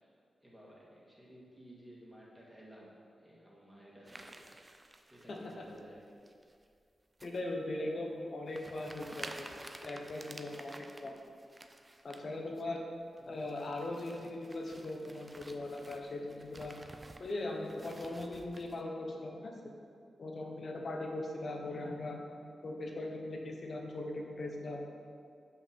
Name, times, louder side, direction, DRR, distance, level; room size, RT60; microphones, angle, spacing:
voice 1, 0.4-4.4 5.1-6.1 13.2-13.5 21.6-22.0, equal, 5° right, -5 dB, 2.0 m, -55 dB
sound 1, 4.1-5.8 6.3-6.7 7.2-7.4 7.9-8.0 8.5-12.2 12.6-12.8 13.2-18.8, right 2 dB, 25° right, 0.5 m, -51 dB
voice 2, 5.3-5.6 7.2-11.1 12.0-12.8 13.3-16.8 17.2-19.5 20.2-22.2 22.6-24.8, left 2 dB, 55° left, 1 dB, 1.0 m, -40 dB
5.8 x 5.6 x 5.3 m, 2.3 s
cardioid pair, 75°, 0 cm